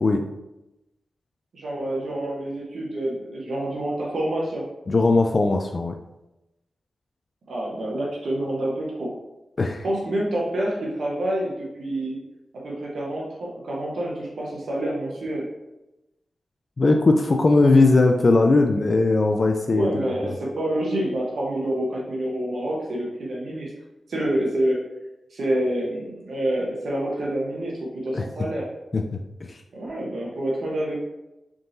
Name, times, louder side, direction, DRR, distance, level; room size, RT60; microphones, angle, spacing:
voice 1, 1.5-4.7 7.5-9.1 9.8-12.2 12.5-15.5 19.7-23.7 24.1-24.8 25.3-28.7 29.7-31.0, right 1 dB, 80° right, -3 dB, 1.0 m, -27 dB
voice 2, 4.9-6.0 9.6-9.8 16.8-20.4 28.1-28.2 28.9-29.2 29.5-29.6, left 3 dB, 50° left, 4 dB, 0.3 m, -19 dB
3.9 x 3.7 x 2.6 m, 0.96 s
cardioid pair, 60°, 0 cm